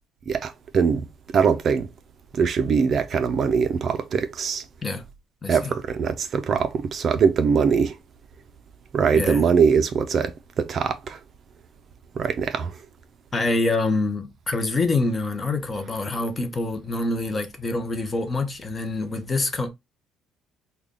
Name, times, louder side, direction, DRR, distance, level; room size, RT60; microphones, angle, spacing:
voice 1, 0.3-1.0 1.3-1.9 2.3-4.6 5.5-8.0 8.9-11.2 12.2-12.7, right 6 dB, 40° right, 0.4 m, -22 dB
voice 2, 5.4-5.7 9.1-9.5 13.3-19.7, left 2 dB, 20° left, 0.6 m, -26 dB
3.6 x 2.2 x 3.5 m
cardioid pair, 145°, 0 cm